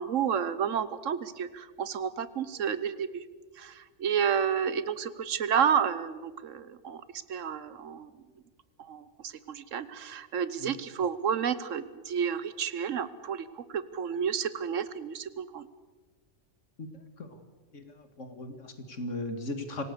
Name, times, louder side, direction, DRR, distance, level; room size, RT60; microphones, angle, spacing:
voice 1, 0.0-3.2 3.6-7.0 7.3-8.1 8.9-15.7, right 7 dB, 75° right, 15 dB, 1.3 m, -31 dB
voice 2, 16.8-17.4 17.7-19.8, left 2 dB, 70° left, 6 dB, 2.4 m, -38 dB
25.5 x 17.5 x 6.8 m, 1.4 s
omnidirectional pair, 1.3 m